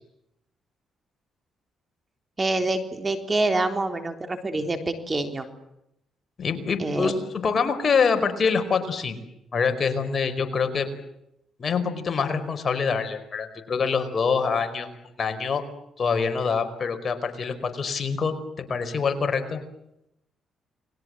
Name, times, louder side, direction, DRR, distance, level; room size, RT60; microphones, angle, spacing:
voice 1, 2.4-5.5 6.8-7.1, right 2 dB, 25° right, 7 dB, 3.8 m, -26 dB
voice 2, 6.4-7.1 7.4-9.2 9.5-10.9 11.6-14.9 15.2-15.6 16.0-19.6, left 5 dB, 40° left, 7 dB, 5.0 m, -25 dB
30.0 x 21.5 x 7.8 m, 0.83 s
cardioid pair, 90°, 0 cm